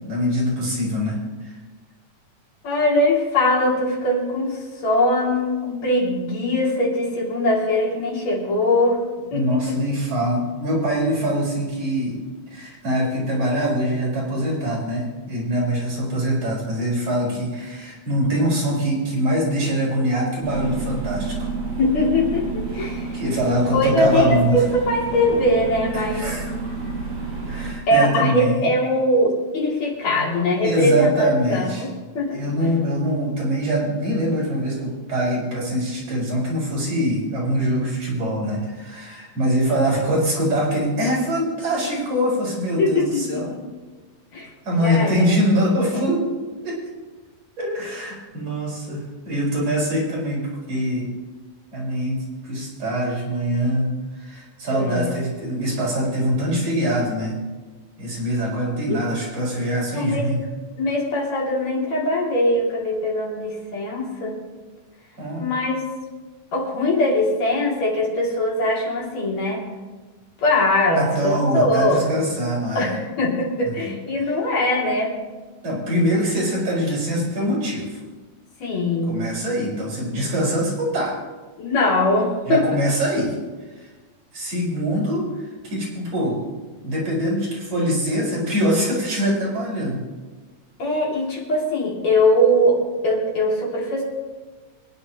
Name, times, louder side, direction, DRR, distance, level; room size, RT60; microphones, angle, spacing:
voice 1, 0.0-1.5 9.3-12.2 12.5-21.5 23.1-24.6 25.3-25.4 25.9-26.5 27.5-28.7 30.6-31.8 32.3-43.6 44.6-46.2 46.6-46.8 47.6-50.4 50.7-51.1 51.7-53.9 54.2-57.4 58.0-60.4 65.2-65.4 70.9-72.9 73.8-73.9 75.6-78.0 79.1-81.1 82.5-83.3 84.3-85.3 85.6-86.4 86.8-90.1, equal, 50° right, -6 dB, 5.5 m, -23 dB
voice 2, 2.6-9.0 9.3-9.8 21.8-23.1 23.7-26.3 27.9-31.9 32.2-32.7 42.8-43.6 44.3-45.5 54.7-55.1 59.9-60.3 60.8-64.4 65.4-65.8 66.5-69.6 70.4-72.1 72.8-75.1 76.1-76.3 78.6-79.2 81.6-82.7 90.8-94.0, left 1 dB, 60° left, -3 dB, 3.8 m, -21 dB
sound 1, 20.4-27.7, right 3 dB, 70° right, 6.4 m, -29 dB
25.0 x 9.9 x 2.9 m, 1.3 s
omnidirectional pair, 3.5 m